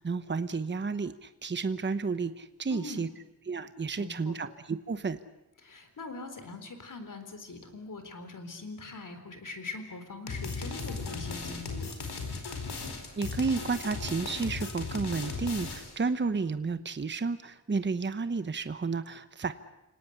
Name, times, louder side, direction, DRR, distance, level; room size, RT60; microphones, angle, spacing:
voice 1, 0.0-3.1 3.5-5.2 13.2-19.5, right 4 dB, 30° right, 11 dB, 1.0 m, -31 dB
voice 2, 2.7-3.1 4.0-4.4 5.6-12.0, left 3 dB, 55° left, 8 dB, 4.0 m, -42 dB
sound 1, 10.3-16.0, left 4 dB, 85° left, 4.8 m, -37 dB
30.0 x 18.5 x 9.9 m, 0.91 s
wide cardioid pair, 170°, 38 cm